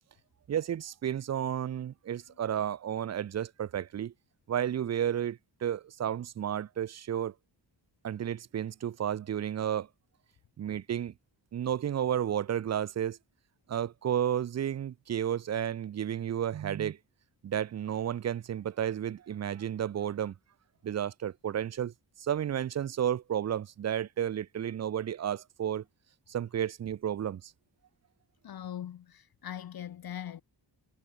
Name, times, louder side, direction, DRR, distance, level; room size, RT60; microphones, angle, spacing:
voice 1, 0.5-4.1 4.5-7.3 8.0-9.9 10.6-11.1 11.5-13.2 13.7-17.0 17.4-20.3 20.8-21.9 22.2-25.8 26.3-27.5, right 10 dB, 40° right, 0.5 m, -32 dB
voice 2, 28.4-30.4, left 10 dB, 55° left, 0.8 m, -41 dB
cardioid pair, 75°, 43 cm